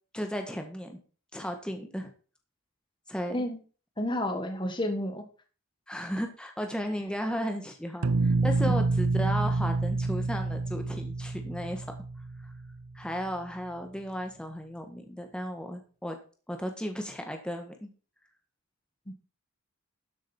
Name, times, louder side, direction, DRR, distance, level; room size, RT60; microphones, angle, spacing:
voice 1, 0.1-1.0 1.3-2.1 3.1-3.4 5.9-11.9 12.4-12.5 12.9-16.2 16.5-17.9, equal, 5° left, 4 dB, 1.5 m, -35 dB
voice 2, 4.0-5.2 19.1-19.2, left 1 dB, 20° left, 5 dB, 1.6 m, -31 dB
sound 1, 8.0-12.9, right 3 dB, 75° right, 0.6 m, -28 dB
12.5 x 7.4 x 4.4 m, 0.38 s
head